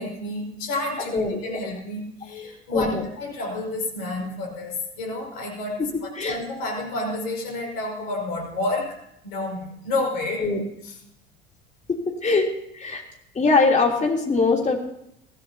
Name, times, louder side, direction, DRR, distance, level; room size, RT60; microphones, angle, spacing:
voice 1, 0.0-5.9 6.2-10.5, left 2 dB, 60° left, 1 dB, 5.6 m, -30 dB
voice 2, 1.0-1.6 2.7-3.0 6.2-6.4 10.4-10.6 12.2-12.5 12.7-13.0 13.3-14.8, left 3 dB, 20° left, 1 dB, 3.4 m, -22 dB
22.5 x 16.0 x 2.9 m, 0.76 s
figure-of-eight pair, 65°, 32 cm